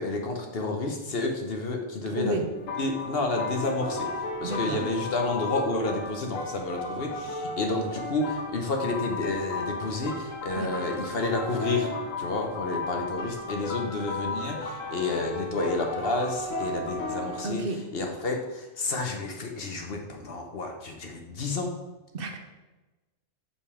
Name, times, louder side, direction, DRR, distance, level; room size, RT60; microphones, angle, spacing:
voice 1, 0.0-2.4 2.8-4.1 4.4-11.9 12.2-21.7, left 3 dB, 50° left, 3 dB, 1.0 m, -30 dB
sound 1, 2.5-17.4, left 2 dB, 75° left, 1.2 m, -34 dB
voice 2, 4.4-4.8 10.6-10.7 17.4-17.8 22.1-22.4, right 3 dB, 50° right, 4 dB, 1.0 m, -31 dB
5.5 x 5.2 x 4.9 m, 1.2 s
omnidirectional pair, 1.4 m